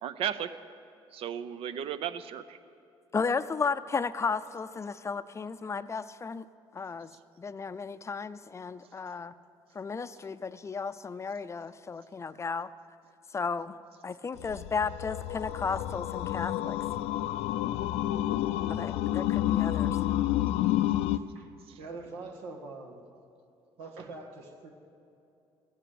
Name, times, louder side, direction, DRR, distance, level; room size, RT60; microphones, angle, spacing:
voice 1, 0.0-0.6 1.1-2.6 21.7-21.8, right 9 dB, 65° right, 13 dB, 0.7 m, -35 dB
voice 2, 3.1-6.4 6.7-7.1 7.4-9.3 9.7-12.7 13.3-13.8 14.0-16.8 18.7-20.0, left 5 dB, 30° left, 13 dB, 0.5 m, -34 dB
sound 1, 14.4-21.2, left 13 dB, 80° left, 0.4 m, -29 dB
voice 3, 21.1-21.5 21.8-23.0 23.8-24.7, right 3 dB, 90° right, 2 dB, 1.7 m, -43 dB
15.0 x 10.0 x 7.7 m, 2.7 s
supercardioid pair, 85°, 10 cm